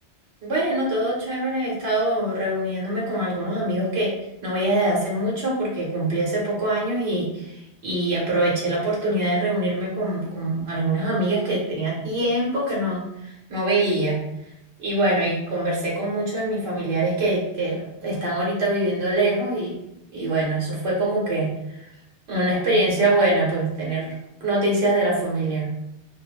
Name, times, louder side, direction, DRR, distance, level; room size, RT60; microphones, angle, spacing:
voice 1, 0.4-4.1 4.4-14.2 14.8-19.7 20.1-21.9 22.3-24.1 24.4-25.7, right 1 dB, 70° right, -5 dB, 1.0 m, -24 dB
2.5 x 2.0 x 2.8 m, 0.84 s
omnidirectional pair, 1.1 m